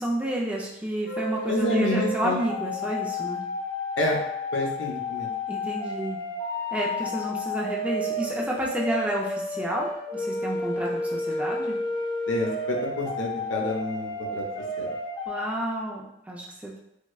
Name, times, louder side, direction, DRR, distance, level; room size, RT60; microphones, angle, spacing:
voice 1, 0.0-3.4 5.5-6.2 6.7-11.8 15.3-16.8, right 1 dB, 10° right, -3 dB, 0.4 m, -30 dB
sound 1, 1.0-15.4, left 2 dB, 20° left, 0.8 m, -31 dB
voice 2, 1.5-2.4 4.0-4.2 4.5-5.3 12.3-14.5 14.8-14.9, left 1 dB, 80° left, 0 dB, 0.7 m, -28 dB
4.6 x 2.1 x 2.3 m, 0.80 s
head